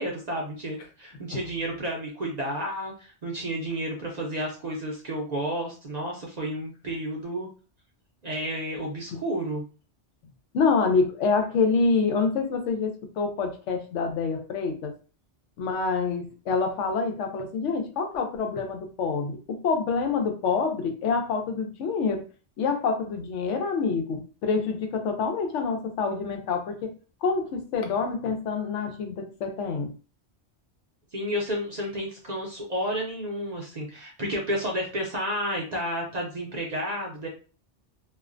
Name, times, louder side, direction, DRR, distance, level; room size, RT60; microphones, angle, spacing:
voice 1, 0.0-7.5 8.2-9.6 31.1-37.3, equal, 50° right, -1 dB, 0.5 m, -31 dB
voice 2, 10.5-12.9 13.2-14.9 15.6-22.2 22.6-26.9 27.2-29.9, left 4 dB, 90° left, 5 dB, 0.9 m, -26 dB
2.4 x 2.1 x 2.4 m, 0.36 s
omnidirectional pair, 1.2 m